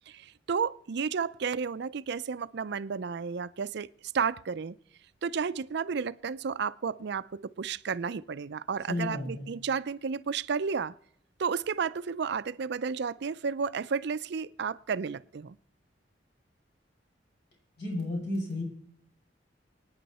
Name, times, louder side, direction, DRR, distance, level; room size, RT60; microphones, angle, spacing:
voice 1, 0.1-3.9 4.1-4.8 5.2-10.9 11.4-15.6, right 6 dB, 65° right, 0.5 m, -32 dB
voice 2, 8.9-9.5 17.8-18.6, left 1 dB, 65° left, 5.7 m, -32 dB
24.5 x 9.6 x 4.2 m
head